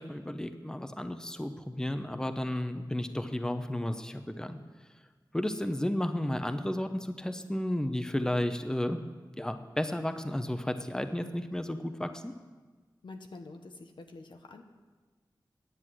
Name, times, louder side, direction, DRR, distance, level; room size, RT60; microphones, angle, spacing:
voice 1, 0.0-4.9 5.3-9.0 9.4-12.3, left 1 dB, 10° left, 8 dB, 0.7 m, -33 dB
voice 2, 13.0-14.6, left 3 dB, 85° left, 5 dB, 1.0 m, -47 dB
10.0 x 8.0 x 7.5 m, 1.4 s
wide cardioid pair, 65°, 8 cm